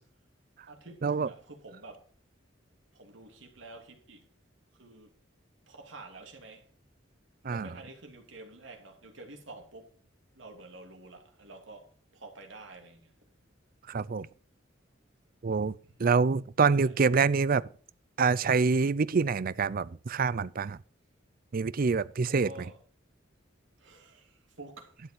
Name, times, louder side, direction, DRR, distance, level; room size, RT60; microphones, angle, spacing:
voice 1, 0.7-2.1 2.9-4.3 4.7-5.1 5.7-6.7 7.4-9.9 10.3-13.2 15.8-16.1 16.6-16.9 22.3-22.8 23.8-25.0, right 2 dB, 80° right, 3.0 m, -49 dB
voice 2, 13.9-14.3 15.4-17.7 18.2-20.8 21.5-22.5, right 5 dB, 50° right, 0.5 m, -26 dB
11.5 x 8.3 x 4.8 m
head